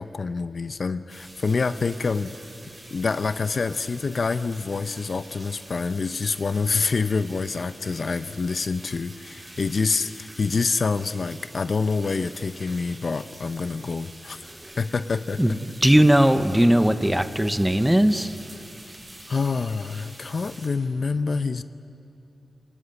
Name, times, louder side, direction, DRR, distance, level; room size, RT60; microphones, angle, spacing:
voice 1, 0.0-2.3 2.9-15.6 19.3-21.6, left 4 dB, 50° left, 11 dB, 0.6 m, -27 dB
sound 1, 1.1-20.7, right 1 dB, 30° right, 5.1 m, -46 dB
voice 2, 15.4-18.3, right 1 dB, 5° right, 10 dB, 0.8 m, -19 dB
28.5 x 20.0 x 8.7 m, 2.8 s
wide cardioid pair, 145°, 0 cm